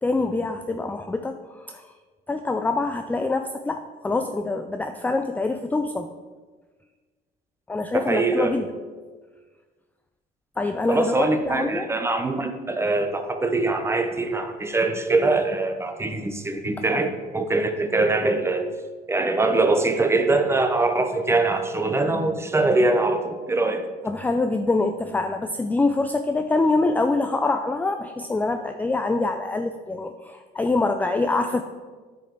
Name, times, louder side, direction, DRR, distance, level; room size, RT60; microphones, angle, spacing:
voice 1, 0.0-1.9 2.3-6.1 7.7-8.7 10.6-11.9 24.0-31.6, left 3 dB, 10° left, 7 dB, 0.4 m, -25 dB
voice 2, 7.9-8.5 10.9-18.7 19.1-23.9, right 2 dB, 15° right, 6 dB, 0.9 m, -23 dB
9.3 x 5.2 x 4.5 m, 1.4 s
cardioid pair, 110°, 17 cm